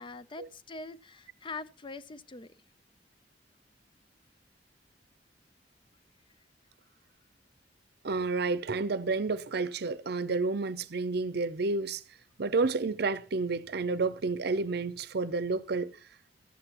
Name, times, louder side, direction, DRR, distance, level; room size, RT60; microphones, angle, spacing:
voice 1, 0.0-2.5, left 3 dB, 30° left, 0.5 m, -43 dB
voice 2, 8.0-12.0 12.4-15.9, right 3 dB, 65° right, 0.6 m, -30 dB
13.5 x 8.9 x 3.0 m
head